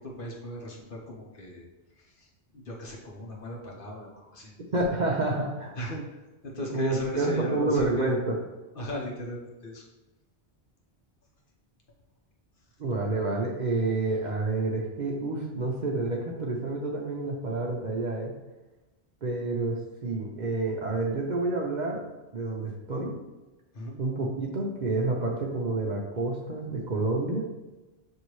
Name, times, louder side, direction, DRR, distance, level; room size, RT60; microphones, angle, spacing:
voice 1, 0.0-1.7 2.0-2.3 2.5-4.5 5.7-8.3 8.7-9.8 23.7-24.0, left 1 dB, 55° left, -2 dB, 1.0 m, -37 dB
voice 2, 4.7-5.7 6.7-8.4 12.8-18.3 19.2-22.0 22.3-23.1 24.0-27.4, right 2 dB, 50° right, -1 dB, 0.7 m, -29 dB
6.4 x 2.7 x 3.0 m, 1.1 s
omnidirectional pair, 1.2 m